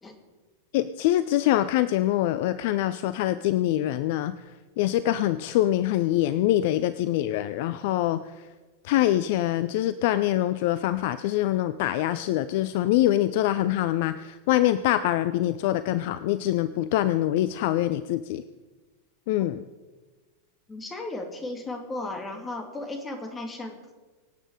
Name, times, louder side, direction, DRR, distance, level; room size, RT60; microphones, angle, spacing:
voice 1, 0.7-4.4 4.8-8.2 8.8-18.4 19.3-19.6, left 13 dB, 50° left, 15 dB, 0.5 m, -24 dB
voice 2, 20.7-24.0, left 2 dB, 15° left, 5 dB, 2.6 m, -35 dB
24.0 x 8.8 x 4.9 m, 1.3 s
figure-of-eight pair, 90°, 0 cm